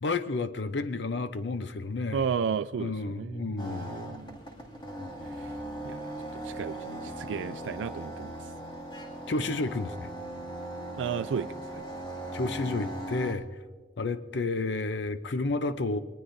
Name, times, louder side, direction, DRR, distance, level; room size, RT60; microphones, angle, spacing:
voice 1, 0.0-2.2 2.8-4.0 9.3-10.1 12.3-13.4 14.0-16.0, left 3 dB, 65° left, 11 dB, 0.6 m, -31 dB
voice 2, 2.1-4.4 5.2-5.6 5.8-8.5 10.9-11.8, right 6 dB, 85° right, 12 dB, 0.3 m, -34 dB
sound 1, 3.6-13.3, right 1 dB, 25° left, 2.3 m, -39 dB
23.0 x 20.0 x 2.6 m, 1.5 s
head